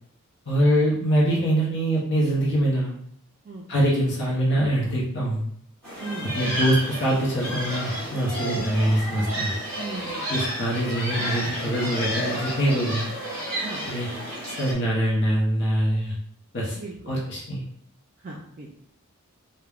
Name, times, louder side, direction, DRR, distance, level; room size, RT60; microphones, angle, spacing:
voice 1, 0.5-2.9 3.7-5.4 6.2-9.5 10.3-13.1 13.8-14.1 14.5-16.1 16.5-16.8 17.1-17.6, right 1 dB, 55° left, -4 dB, 0.7 m, -24 dB
sound 1, 5.8-14.7, equal, 5° left, 1.1 m, -31 dB
voice 2, 9.8-10.3 13.6-13.8 16.7-17.1 18.2-18.7, right 3 dB, 40° right, -2 dB, 0.3 m, -37 dB
3.3 x 2.1 x 2.3 m, 0.66 s
head